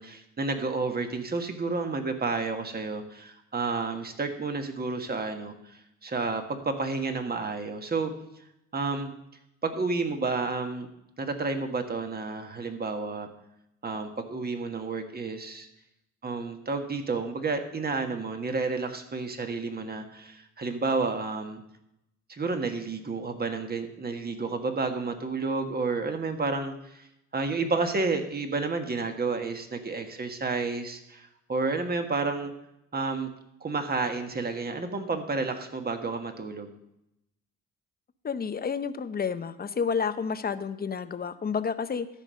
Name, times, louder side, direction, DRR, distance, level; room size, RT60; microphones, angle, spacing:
voice 1, 0.0-8.1 8.7-9.1 9.6-10.9 11.2-13.3 13.8-15.7 16.2-21.6 22.3-27.1 27.3-32.5 32.9-33.3 33.6-36.7, right 3 dB, 30° right, 6 dB, 1.5 m, -31 dB
voice 2, 38.2-42.1, left 6 dB, 30° left, 11 dB, 0.7 m, -30 dB
13.5 x 5.4 x 6.4 m, 0.83 s
cardioid pair, 90°, 30 cm